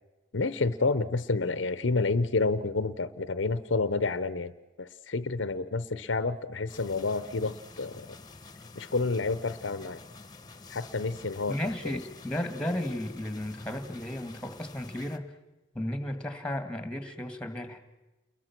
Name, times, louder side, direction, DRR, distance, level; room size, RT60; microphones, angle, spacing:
voice 1, 0.3-4.5 4.8-8.2 8.7-10.0 10.7-11.6 11.8-12.0, left 3 dB, 70° left, 15 dB, 0.9 m, -29 dB
sound 1, 6.7-15.2, left 3 dB, 20° left, 1.3 m, -49 dB
voice 2, 11.5-15.3 15.7-17.8, left 1 dB, 5° left, 8 dB, 2.0 m, -34 dB
29.0 x 22.0 x 6.1 m, 1.1 s
head